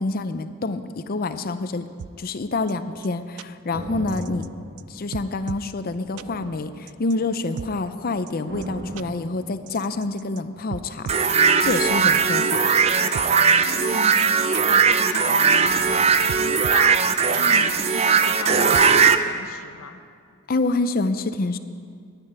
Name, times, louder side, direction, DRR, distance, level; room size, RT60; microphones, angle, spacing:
voice 1, 0.0-1.9 2.2-4.5 4.9-11.1 11.6-12.6 20.5-21.6, left 3 dB, 45° left, 10 dB, 0.5 m, -27 dB
sound 1, 2.0-2.1 2.7-2.8 3.0-3.1 3.4-3.5 4.1-4.5 4.8-4.9 5.1-5.7 6.2-6.3 6.9-7.7 8.3-8.4 8.6-8.7 9.0-9.1 9.7-10.4 10.7-11.3 11.8-11.9 12.5-13.3 13.8-13.9 14.2-14.3 14.5-14.6 15.2-15.6 15.9-16.0 16.3-16.9 17.3-17.4 18.0-18.8, right 7 dB, 90° right, 0.4 m, -36 dB
sound 2, 3.7-5.6 6.1-7.4 8.5-10.2 11.6-14.0 15.6-17.8 18.0-18.1, right 1 dB, 45° right, 1.3 m, -39 dB
sound 3, 11.1-19.2, right 5 dB, 30° right, 0.5 m, -19 dB
voice 2, 13.6-17.0 17.4-20.0, left 3 dB, 75° left, 6 dB, 0.8 m, -36 dB
10.5 x 10.0 x 9.7 m, 2.1 s
head